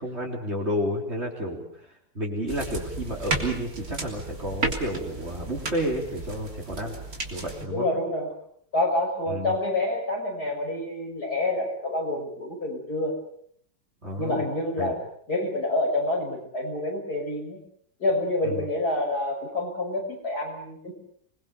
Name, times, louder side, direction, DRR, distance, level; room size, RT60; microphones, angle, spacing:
voice 1, 0.0-1.6 2.1-7.0 7.3-7.9 9.3-9.5 14.0-14.4 14.8-14.9 18.4-18.6, equal, 35° right, -1 dB, 4.1 m, -31 dB
sound 1, 2.5-7.7, right 2 dB, 55° right, 3.7 m, -33 dB
voice 2, 7.7-8.3 8.7-13.1 14.2-15.0 15.3-17.6 18.0-20.9, left 2 dB, 60° left, 1 dB, 6.7 m, -27 dB
27.0 x 21.5 x 6.8 m, 0.64 s
omnidirectional pair, 1.9 m